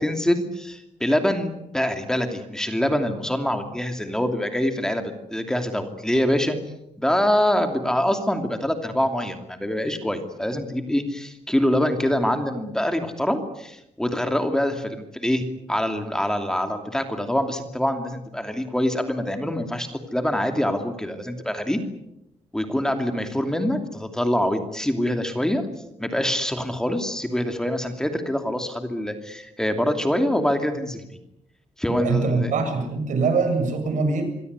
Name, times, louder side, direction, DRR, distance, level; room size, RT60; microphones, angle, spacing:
voice 1, 0.0-6.6 7.0-15.4 15.7-21.8 22.5-25.6 26.0-31.0 31.8-32.5, left 1 dB, 5° left, 5 dB, 2.7 m, -25 dB
voice 2, 32.0-34.2, right 4 dB, 75° right, 8 dB, 7.1 m, -23 dB
26.0 x 23.5 x 8.2 m, 0.84 s
cardioid pair, 150°, 13 cm